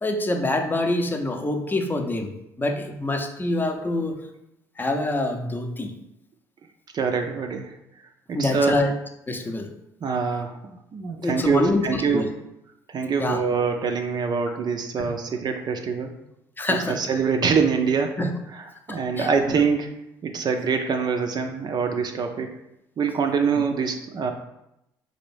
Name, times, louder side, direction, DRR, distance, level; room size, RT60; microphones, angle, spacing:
voice 1, 0.0-2.3 2.6-4.2 4.8-5.9 8.3-8.9 9.3-9.7 11.2-12.3 13.2-13.4 15.0-15.1 16.6-17.0 18.2-18.3 18.9-19.3, left 2 dB, 20° left, 5 dB, 0.6 m, -25 dB
voice 2, 6.9-7.7 8.3-8.8 10.0-12.2 12.9-16.1 16.9-18.2 18.9-19.9 20.2-22.5 23.0-24.3, right 5 dB, 45° right, 4 dB, 0.5 m, -24 dB
4.0 x 2.6 x 3.3 m, 0.84 s
hypercardioid pair, 55°, 10 cm